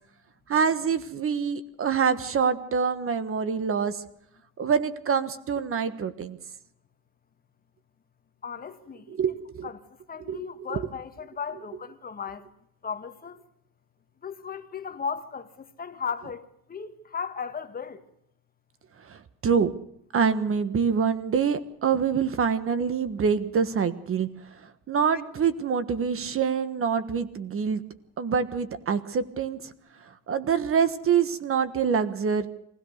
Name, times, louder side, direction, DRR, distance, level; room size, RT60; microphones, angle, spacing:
voice 1, 0.5-4.0 4.6-6.4 9.1-9.7 10.3-10.4 10.7-10.9 19.0-19.7 20.1-27.8 28.2-29.7 30.0-32.5, right 6 dB, 40° right, 1.3 m, -26 dB
voice 2, 8.4-9.2 9.6-9.8 10.1-12.5 12.8-13.4 14.2-16.4 16.7-18.0, left 6 dB, 25° left, 1.7 m, -36 dB
24.0 x 16.5 x 6.5 m
cardioid pair, 150°, 33 cm